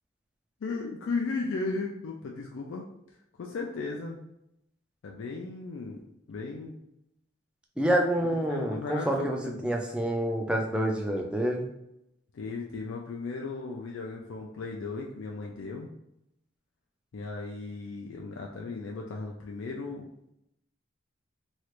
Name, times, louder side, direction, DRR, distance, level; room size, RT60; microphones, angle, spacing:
voice 1, 0.6-2.8 3.4-4.2 5.0-6.0 6.3-6.8 8.5-9.8 12.3-15.9 17.1-20.1, left 3 dB, 75° left, 0 dB, 0.4 m, -36 dB
voice 2, 7.8-9.4 9.6-11.7, right 1 dB, 5° right, 1 dB, 0.4 m, -27 dB
3.1 x 2.4 x 3.0 m, 0.81 s
head